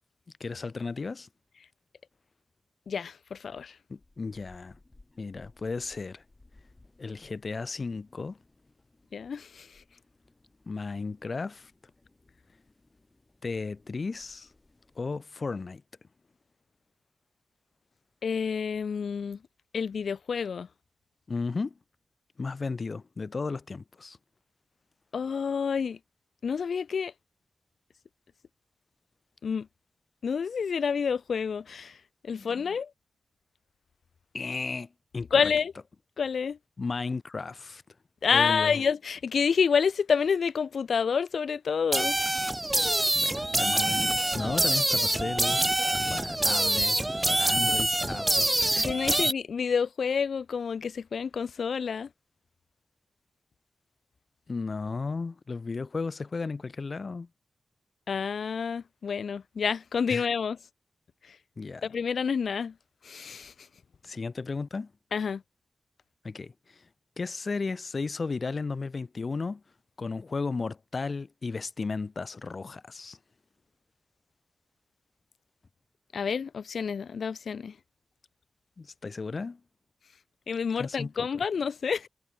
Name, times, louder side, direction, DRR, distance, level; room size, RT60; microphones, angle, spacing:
voice 1, 0.4-1.3 3.9-4.8 5.2-6.2 7.0-8.4 10.7-11.7 13.4-14.5 15.0-15.8 21.3-21.8 22.4-24.2 32.3-32.6 34.3-35.5 36.8-37.9 38.3-38.8 43.1-45.8 46.1-49.2 54.5-57.3 60.1-60.3 61.6-61.9 64.0-64.9 66.2-66.9 67.2-69.6 70.0-73.2 78.8-79.6 80.8-81.3, left 4 dB, 55° left, 0.8 m, -35 dB
voice 2, 2.9-3.7 9.1-9.7 18.2-19.4 19.7-20.7 25.1-26.0 26.4-27.1 29.4-29.7 30.2-32.0 32.2-32.9 35.3-35.7 36.2-36.6 38.2-42.2 48.8-52.1 58.1-60.6 61.3-61.4 61.8-62.7 63.0-63.5 65.1-65.4 76.1-77.7 80.5-82.1, left 6 dB, 80° left, 0.3 m, -28 dB
sound 1, 4.0-15.1, left 2 dB, 30° left, 5.9 m, -61 dB
sound 2, 41.9-49.3, right 1 dB, 20° right, 0.6 m, -25 dB
cardioid pair, 45°, 0 cm